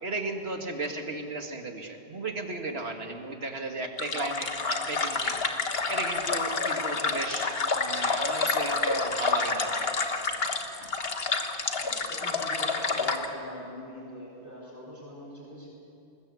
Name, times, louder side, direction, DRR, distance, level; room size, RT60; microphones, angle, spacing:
voice 1, 0.0-5.4 5.9-9.9, right 3 dB, 75° right, 4 dB, 2.2 m, -35 dB
sound 1, 4.0-13.3, left 4 dB, 70° left, 1.6 m, -29 dB
voice 2, 11.8-15.7, left 1 dB, 15° right, -9 dB, 6.2 m, -44 dB
21.0 x 20.5 x 8.4 m, 2.8 s
omnidirectional pair, 1.1 m